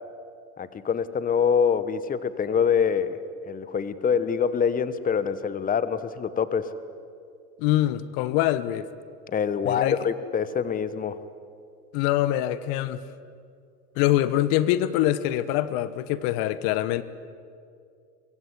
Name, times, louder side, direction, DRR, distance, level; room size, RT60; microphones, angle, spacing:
voice 1, 0.6-3.2 3.4-6.7 9.3-11.2, left 7 dB, 20° left, 14 dB, 1.1 m, -25 dB
voice 2, 7.6-8.9 9.6-10.0 11.9-13.0 14.0-17.0, left 14 dB, 50° left, 15 dB, 1.2 m, -24 dB
23.0 x 23.0 x 9.9 m, 2.3 s
hypercardioid pair, 90°, 45 cm